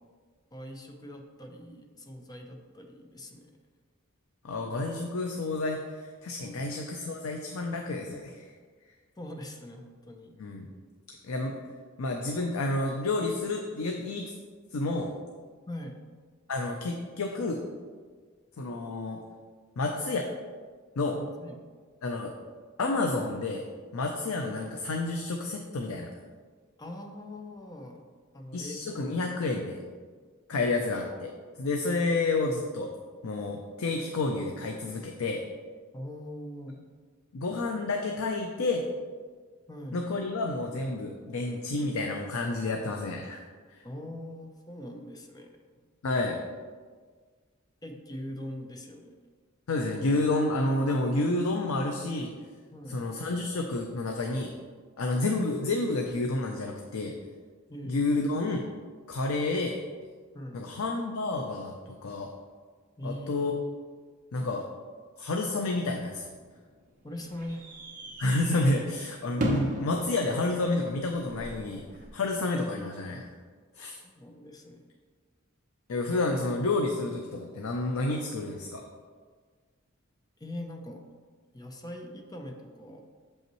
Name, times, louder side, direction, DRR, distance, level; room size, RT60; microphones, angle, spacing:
voice 1, 0.5-3.5 6.4-6.9 9.2-10.4 15.7-16.0 21.4-21.7 26.8-28.0 28.3-29.0 30.5-30.7 35.9-36.8 39.7-40.0 43.8-45.6 47.8-49.3 52.7-53.1 57.7-58.0 60.3-60.7 63.0-63.6 67.0-67.7 74.0-74.8 80.4-81.0 81.5-83.0, left 1 dB, 20° left, 3 dB, 0.6 m, -42 dB
voice 2, 4.4-8.5 10.4-10.7 11.2-11.6 12.0-14.3 14.7-15.1 16.5-17.6 18.6-19.2 19.8-20.3 21.0-21.2 22.0-22.3 22.8-23.6 23.9-26.1 28.5-29.8 30.5-31.3 31.6-32.9 33.2-35.4 37.3-38.8 39.9-43.4 43.7-43.8 46.0-46.4 49.7-52.3 52.9-54.5 55.0-57.1 57.8-58.7 59.1-59.8 60.5-61.8 62.0-62.3 63.0-63.5 64.3-64.7 65.2-66.3 68.2-71.8 72.1-73.3 73.8-74.0 75.9-78.8, left 2 dB, 85° left, 2 dB, 0.5 m, -30 dB
sound 1, 66.1-72.1, equal, 40° right, 0.9 m, -38 dB
7.1 x 5.4 x 3.0 m, 1.6 s
head